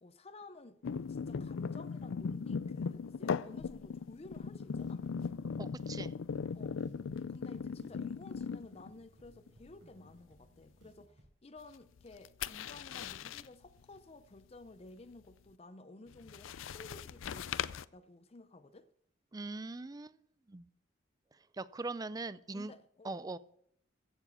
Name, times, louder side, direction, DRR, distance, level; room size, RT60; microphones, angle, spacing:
voice 1, 0.0-0.8 1.1-5.0 6.5-6.8 7.3-18.9 22.5-23.2, left 2 dB, 30° left, 0.6 m, -54 dB
sound 1, 0.8-9.0 9.3-9.7 12.0-13.5 16.1-17.8, left 6 dB, 90° left, 0.4 m, -38 dB
sound 2, 4.3-11.3, equal, 75° right, 5.9 m, -64 dB
voice 2, 5.6-6.1 19.3-20.1 20.5-20.7 21.6-22.7 23.0-23.4, right 3 dB, 20° right, 0.4 m, -41 dB
15.0 x 7.2 x 6.9 m
head